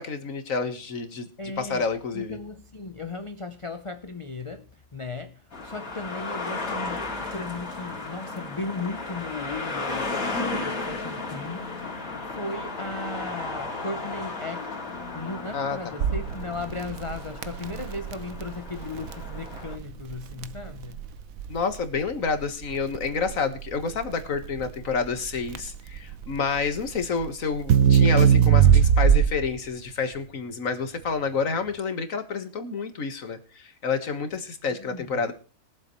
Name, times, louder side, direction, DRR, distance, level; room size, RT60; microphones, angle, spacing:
voice 1, 0.0-1.3 1.6-2.4 15.5-15.9 21.5-35.3, left 5 dB, 70° left, 1.8 m, -29 dB
voice 2, 1.4-1.9 2.1-14.8 15.1-21.0 34.7-35.3, left 3 dB, 30° left, 0.7 m, -36 dB
sound 1, 5.5-19.8, left 3 dB, 90° left, 3.1 m, -34 dB
Crackle, 16.0-29.6, right 8 dB, 80° right, 1.2 m, -22 dB
22.0 x 7.7 x 3.1 m
omnidirectional pair, 1.4 m